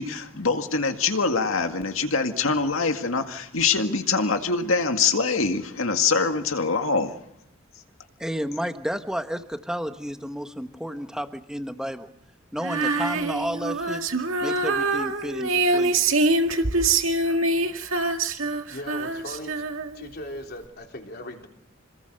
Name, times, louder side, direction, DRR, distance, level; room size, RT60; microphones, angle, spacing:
voice 1, 0.0-7.2, left 4 dB, 85° left, 6 dB, 2.0 m, -24 dB
voice 2, 8.2-12.1 12.5-14.0 14.4-16.0, equal, 5° right, 7 dB, 1.3 m, -31 dB
Female singing, 12.6-20.1, right 2 dB, 80° right, 2.0 m, -24 dB
voice 3, 18.7-19.7 19.9-21.5, left 1 dB, 50° left, 2 dB, 3.5 m, -38 dB
27.0 x 20.0 x 6.7 m, 0.78 s
head